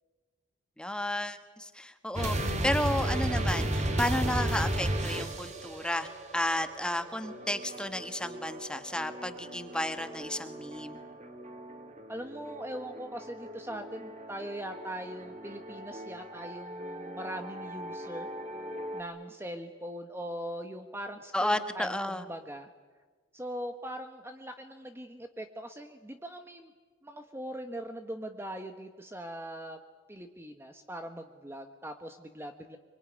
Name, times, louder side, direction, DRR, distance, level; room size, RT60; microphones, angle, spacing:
voice 1, 0.8-11.0 21.3-22.3, left 1 dB, 5° left, 8 dB, 1.4 m, -32 dB
sound 1, 2.1-19.0, right 1 dB, 30° right, 2.8 m, -36 dB
voice 2, 12.1-18.3 18.9-22.7 23.3-26.7 27.0-29.8 30.1-32.8, right 1 dB, 10° right, 6 dB, 1.1 m, -41 dB
25.5 x 24.0 x 9.9 m, 1.4 s
head